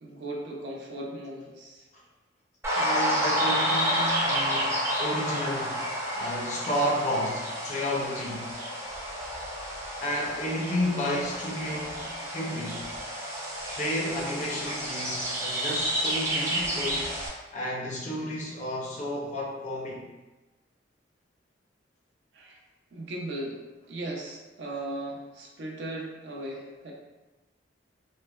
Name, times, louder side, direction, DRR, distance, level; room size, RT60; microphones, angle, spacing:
voice 1, 0.0-1.9 22.3-22.6 22.9-23.6 23.9-26.9, right 1 dB, 70° right, -1 dB, 0.5 m, -37 dB
sound 1, 2.6-17.3, equal, 15° right, 0.5 m, -30 dB
voice 2, 2.8-5.8 6.1-8.5 10.0-12.9 13.8-17.1 17.5-20.0, left 1 dB, 40° left, -3 dB, 0.5 m, -32 dB
3.1 x 2.0 x 2.2 m, 1.1 s
head